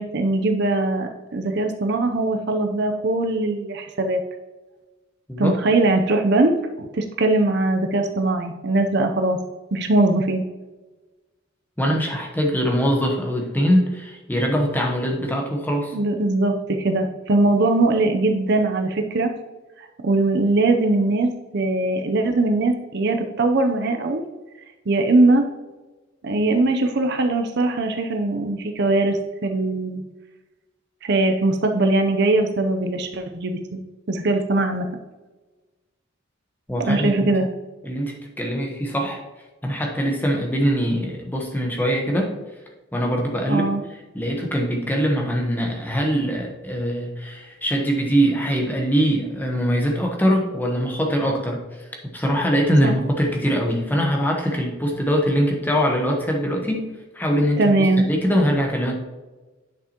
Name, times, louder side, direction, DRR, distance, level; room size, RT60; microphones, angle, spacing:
voice 1, 0.0-4.2 5.4-9.4 9.7-10.4 15.9-19.3 20.0-24.2 24.9-25.4 26.2-30.0 31.0-33.8 34.1-34.9 36.8-37.5 43.5-43.8 52.8-52.9 57.6-58.0, right 2 dB, 55° right, 5 dB, 0.6 m, -21 dB
voice 2, 11.8-15.9 36.7-37.3 37.8-39.2 39.6-42.3 42.9-43.7 44.1-56.9 57.1-58.9, equal, 10° left, 0 dB, 1.1 m, -22 dB
10.0 x 5.8 x 2.9 m, 1.2 s
head